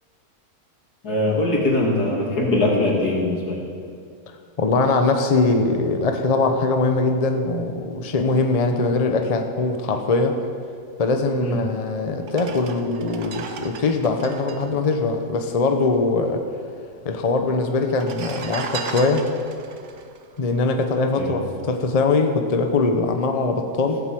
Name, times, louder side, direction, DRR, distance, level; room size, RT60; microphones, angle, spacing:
voice 1, 1.0-3.7 11.4-11.6 21.2-21.3, left 2 dB, 90° left, -2 dB, 3.0 m, -21 dB
voice 2, 4.6-10.4 11.0-16.5 17.0-19.3 20.4-24.0, left 3 dB, 30° left, 5 dB, 0.8 m, -21 dB
sound 1, 11.6-11.7 12.2-16.2 16.4-17.1 17.8-21.3 21.7-22.0, right 5 dB, 55° right, 1.1 m, -36 dB
15.0 x 8.0 x 7.6 m, 2.3 s
omnidirectional pair, 1.6 m